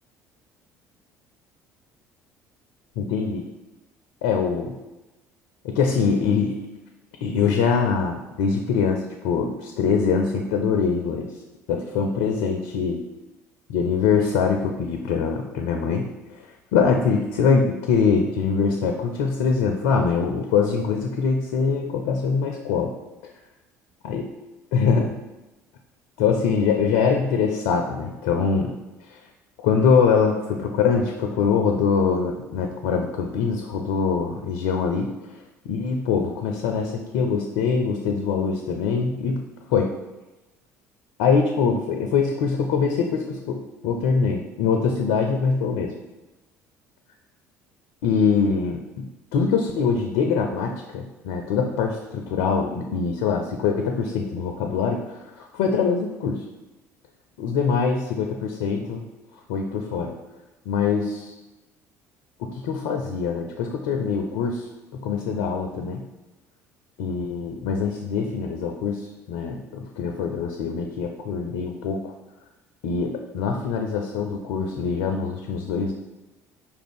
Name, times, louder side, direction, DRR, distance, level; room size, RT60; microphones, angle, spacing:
voice 1, 3.0-3.4 4.2-4.7 5.6-6.6 7.2-11.3 11.7-13.0 13.7-16.1 16.3-22.9 24.0-24.3 24.7-25.1 26.2-28.7 29.6-35.1 35.7-39.4 39.7-39.9 41.2-45.9 48.0-49.1 49.3-56.4 57.4-59.0 59.5-60.1 60.7-61.3 62.4-64.7 64.9-66.0 67.0-72.1 72.8-75.9, left 5 dB, 70° left, 4 dB, 0.4 m, -23 dB
4.8 x 2.5 x 3.4 m, 1.1 s
figure-of-eight pair, 60°, 8 cm